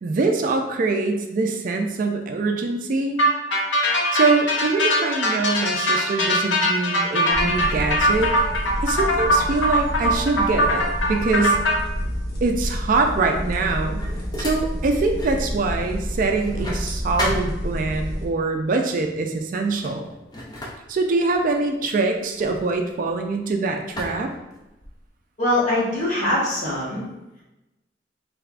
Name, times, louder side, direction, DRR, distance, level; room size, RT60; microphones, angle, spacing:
voice 1, 0.0-3.2 4.1-8.3 8.8-11.6 12.4-14.0 14.4-20.1 20.9-24.3, right 3 dB, 50° right, 4 dB, 0.3 m, -23 dB
sound 1, 3.2-11.8, equal, 80° left, 0.6 m, -21 dB
sound 2, 7.3-18.3, equal, 55° left, 0.9 m, -29 dB
sound 3, 13.4-15.4 15.8-18.1 19.0-19.2 19.6-23.4 24.0-25.1, left 1 dB, 20° left, 0.5 m, -35 dB
voice 2, 25.4-27.0, left 1 dB, 40° left, -7 dB, 1.2 m, -22 dB
3.4 x 3.2 x 2.4 m, 0.98 s
head